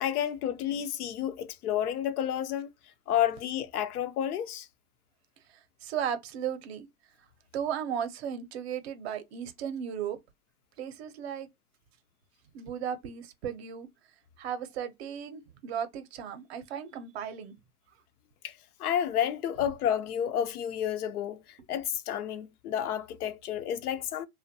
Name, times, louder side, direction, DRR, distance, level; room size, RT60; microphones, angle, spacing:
voice 1, 0.0-2.7 3.1-4.7 18.4-18.5 18.8-24.3, left 10 dB, 85° left, 0.6 m, -30 dB
voice 2, 5.5-6.9 7.5-10.2 10.8-11.5 12.5-13.9 14.4-17.5, right 8 dB, 45° right, 0.6 m, -35 dB
2.5 x 2.1 x 2.6 m
hypercardioid pair, 140°, 43 cm